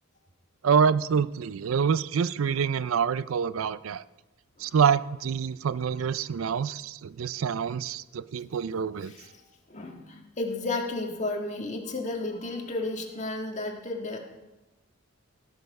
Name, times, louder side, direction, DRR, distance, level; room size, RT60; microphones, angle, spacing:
voice 1, 0.6-4.0 4.6-9.1, right 6 dB, 75° right, 17 dB, 0.4 m, -26 dB
voice 2, 9.0-9.4 9.7-14.4, left 2 dB, 35° left, 1 dB, 1.7 m, -33 dB
16.5 x 6.7 x 5.4 m, 1.0 s
head